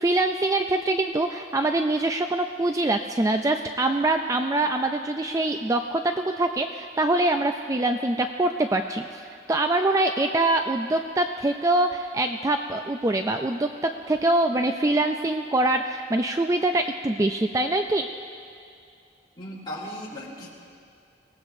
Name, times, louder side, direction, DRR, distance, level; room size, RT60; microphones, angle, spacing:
voice 1, 0.0-18.1, right 2 dB, 20° right, 6 dB, 0.4 m, -24 dB
voice 2, 19.4-20.5, equal, 25° left, -6 dB, 3.5 m, -36 dB
24.5 x 18.0 x 2.6 m, 2.4 s
head